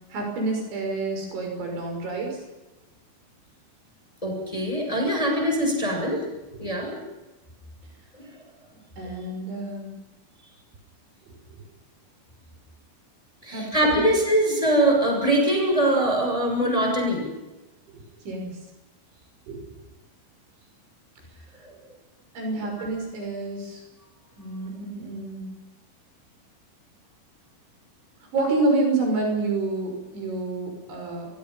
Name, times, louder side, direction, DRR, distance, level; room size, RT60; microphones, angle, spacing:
voice 1, 0.1-2.4 6.6-6.7 8.7-10.0 13.5-14.0 17.9-18.5 19.5-19.7 22.3-23.8 24.4-25.4 28.3-31.3, right 2 dB, 65° right, 2 dB, 8.4 m, -28 dB
voice 2, 4.2-6.2 6.6-7.0 8.2-8.3 13.4-17.3 21.6-21.7, right 1 dB, 5° left, 1 dB, 6.7 m, -22 dB
27.5 x 23.5 x 5.7 m, 1.1 s
omnidirectional pair, 5.7 m